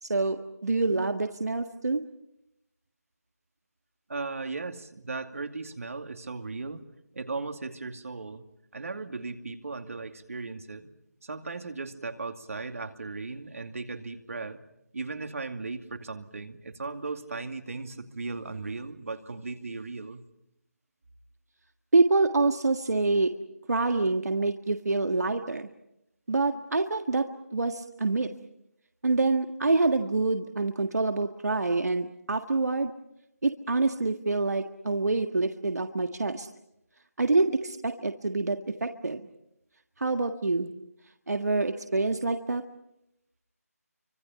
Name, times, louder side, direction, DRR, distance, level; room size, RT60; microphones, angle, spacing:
voice 1, 0.0-2.0 21.9-23.3 23.7-25.7 26.3-28.3 29.0-32.9 33.4-36.5 37.2-39.2 40.0-40.7 41.3-42.6, right 3 dB, 75° right, 6 dB, 1.7 m, -26 dB
voice 2, 4.1-6.8 7.1-8.4 8.7-10.9 11.2-14.6 14.9-20.2, right 3 dB, 60° right, 7 dB, 2.5 m, -37 dB
30.0 x 25.5 x 5.7 m, 0.82 s
figure-of-eight pair, 170°, 9 cm